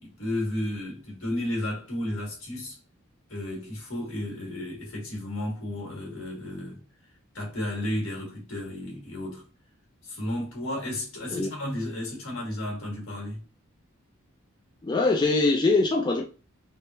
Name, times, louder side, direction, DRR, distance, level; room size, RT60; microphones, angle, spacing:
voice 1, 0.0-2.8 3.3-6.8 7.3-9.4 10.0-13.4, left 1 dB, 80° left, 1.6 m, -33 dB
voice 2, 14.8-16.2, left 3 dB, 20° left, 0.3 m, -23 dB
3.6 x 2.0 x 2.6 m
head